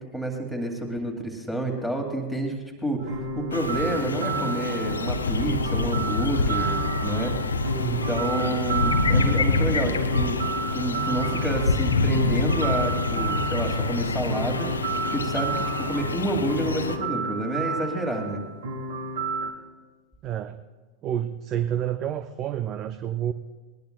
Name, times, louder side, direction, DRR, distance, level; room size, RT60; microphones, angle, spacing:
voice 1, 0.0-7.4 7.9-10.4 10.7-18.4, right 1 dB, 5° right, 2 dB, 2.3 m, -29 dB
sound 1, 3.0-19.5, right 3 dB, 60° right, 1.7 m, -31 dB
sound 2, 3.5-17.0, left 3 dB, 75° left, 0.7 m, -26 dB
voice 2, 7.7-8.1 20.2-20.6 21.0-23.3, right 10 dB, 35° right, 11 dB, 0.5 m, -29 dB
20.0 x 20.0 x 2.2 m, 1.3 s
figure-of-eight pair, 90°, 0 cm